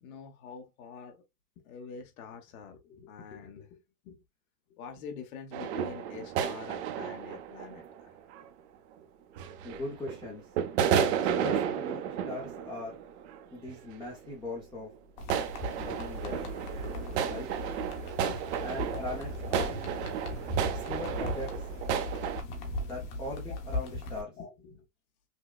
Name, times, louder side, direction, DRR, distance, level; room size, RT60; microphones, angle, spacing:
voice 1, 0.0-1.2 1.6-4.2 4.7-7.8 18.3-19.0 20.0-20.1 23.5-23.6 24.4-24.8, left 6 dB, 65° left, 1.2 m, -46 dB
sound 1, 5.5-8.5 9.4-10.3 10.6-13.4 13.7-14.3 15.3-22.4, right 8 dB, 45° right, 0.7 m, -32 dB
voice 2, 9.6-10.5 11.3-13.0 13.5-14.9 15.8-16.4 17.2-17.5 18.6-19.8 20.7-21.7 22.8-24.3, left 2 dB, 10° left, 0.5 m, -40 dB
sound 2, 15.2-24.2, left 1 dB, 40° left, 1.3 m, -38 dB
5.8 x 2.2 x 2.3 m
supercardioid pair, 150°, 47 cm